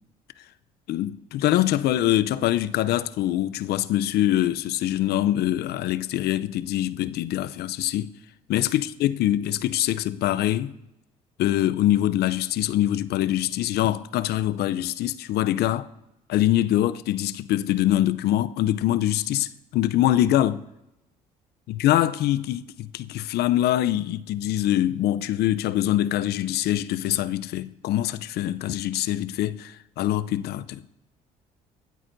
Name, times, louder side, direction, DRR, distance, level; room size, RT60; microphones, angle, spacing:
voice 1, 0.9-8.1 8.5-10.8 11.4-15.9 16.3-20.6 21.7-30.8, left 13 dB, 65° left, 0.6 m, -24 dB
17.5 x 12.5 x 2.7 m
hypercardioid pair, 60°, 18 cm